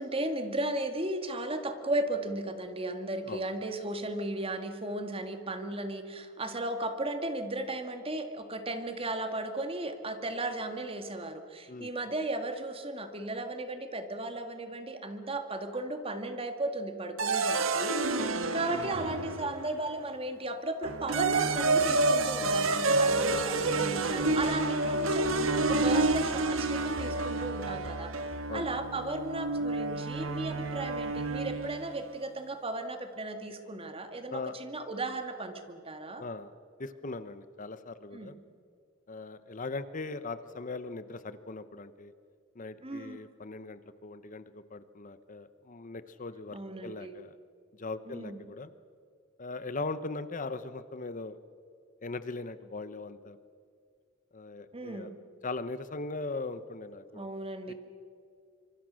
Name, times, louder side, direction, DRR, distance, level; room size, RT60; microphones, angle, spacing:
voice 1, 0.0-28.1 28.5-36.2 38.1-38.4 42.8-43.2 46.5-47.2 48.1-48.4 54.7-55.2 57.1-57.7, right 2 dB, 30° right, 7 dB, 2.0 m, -35 dB
sound 1, 17.2-19.8 20.8-31.9, right 3 dB, 90° right, 1.7 m, -29 dB
voice 2, 36.2-36.5 36.8-38.4 39.1-42.1 42.5-47.3 47.8-48.7 49.4-51.4 52.0-53.4 54.3-55.1 55.4-57.3 57.7-57.8, left 3 dB, 40° left, 13 dB, 0.8 m, -39 dB
26.0 x 24.5 x 6.3 m, 2.3 s
head